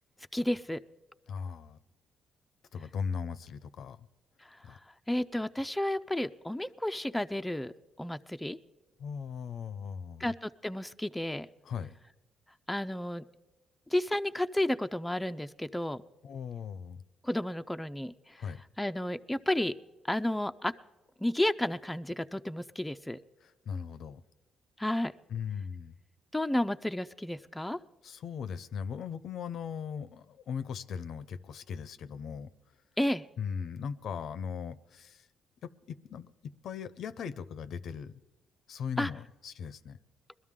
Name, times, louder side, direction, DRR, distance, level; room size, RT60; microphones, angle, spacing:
voice 1, 0.3-0.8 5.1-7.7 8.0-8.6 10.2-11.5 12.7-13.2 13.9-16.0 17.2-18.1 18.8-19.7 20.1-20.7 21.2-23.2 24.8-25.1 26.3-27.8 33.0-33.3 39.0-39.1, left 1 dB, 5° left, 0.4 m, -31 dB
voice 2, 1.3-1.8 2.7-4.1 4.6-4.8 9.0-10.3 11.6-11.9 16.2-17.0 18.4-18.6 23.4-24.2 25.3-26.0 28.0-32.5 33.4-35.2 35.6-38.1 38.7-40.0, left 7 dB, 70° left, 0.6 m, -38 dB
22.0 x 12.5 x 3.7 m
cardioid pair, 90°, 0 cm